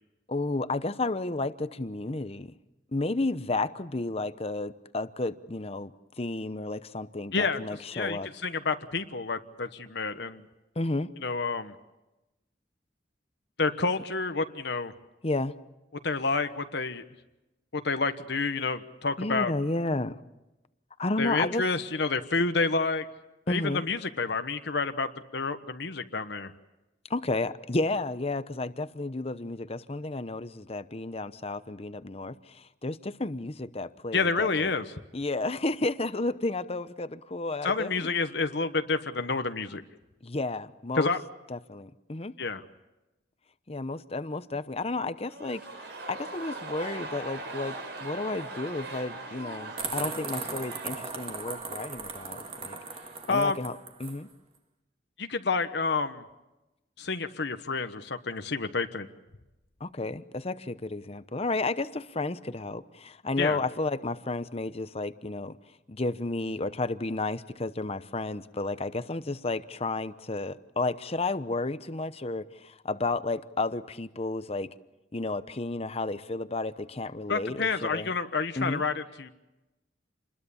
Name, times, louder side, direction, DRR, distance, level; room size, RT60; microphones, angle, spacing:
voice 1, 0.3-2.5 2.9-8.3 10.8-11.1 15.2-15.6 19.2-20.2 21.0-21.6 23.5-23.8 27.1-34.7 35.1-38.1 40.2-41.1 41.5-42.3 43.7-47.8 48.0-52.8 53.3-54.3 59.8-65.6 65.9-74.7 75.1-78.1 78.6-78.8, left 2 dB, 35° left, 13 dB, 0.9 m, -32 dB
voice 2, 7.3-10.4 11.2-11.7 13.6-14.9 16.0-17.0 17.7-19.5 21.2-23.1 23.5-26.5 34.1-34.8 37.6-39.8 41.0-41.2 42.4-42.6 53.3-53.6 55.2-56.2 57.0-59.1 63.4-63.6 77.3-79.3, left 4 dB, 65° left, 8 dB, 1.2 m, -29 dB
sound 1, 45.2-53.3 53.6-53.7, right 2 dB, 65° right, 5.3 m, -41 dB
sound 2, 49.8-54.2, right 4 dB, 30° right, 2.1 m, -38 dB
28.0 x 21.5 x 7.2 m, 0.99 s
head